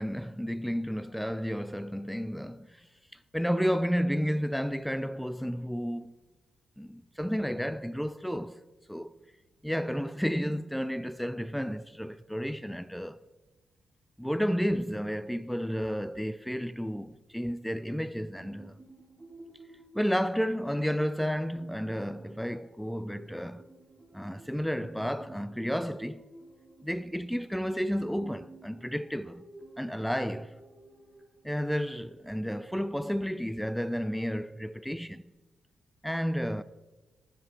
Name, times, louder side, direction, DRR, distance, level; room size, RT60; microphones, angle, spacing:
voice 1, 0.0-2.8 3.3-6.1 6.8-8.6 8.9-9.1 9.6-13.2 14.2-18.8 19.9-23.6 24.1-26.2 26.8-29.4 29.8-30.6 31.4-35.2 36.0-36.6, equal, ahead, 0.4 m, -32 dB
sound 1, 18.4-32.8, right 2 dB, 25° right, 2.3 m, -53 dB
19.5 x 7.4 x 4.3 m
cardioid pair, 100°, 0 cm